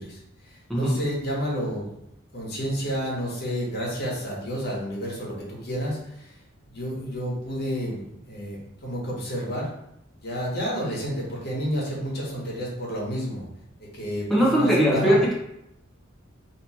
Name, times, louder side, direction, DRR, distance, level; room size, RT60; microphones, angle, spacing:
voice 1, 0.0-1.9 2.3-6.3 6.7-9.7 10.2-13.4 13.8-15.2, equal, 55° left, -4 dB, 1.3 m, -30 dB
voice 2, 0.7-1.0 14.3-15.3, equal, ahead, -6 dB, 1.0 m, -20 dB
3.1 x 3.0 x 4.2 m, 0.80 s
head